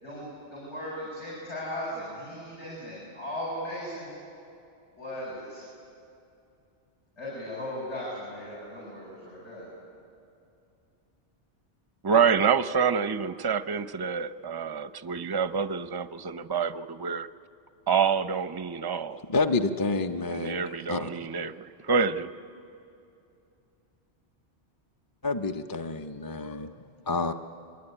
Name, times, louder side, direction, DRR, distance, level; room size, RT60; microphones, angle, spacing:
voice 1, 0.0-4.1 5.0-5.6 7.2-9.7, left 1 dB, 85° left, -7 dB, 7.6 m, -37 dB
voice 2, 12.0-17.3 17.9-19.2 20.3-22.3, right 6 dB, 30° right, 12 dB, 0.5 m, -27 dB
voice 3, 19.3-21.3 25.2-27.3, left 3 dB, 25° left, 5 dB, 0.6 m, -29 dB
24.5 x 22.5 x 9.9 m, 2.6 s
omnidirectional pair, 1.1 m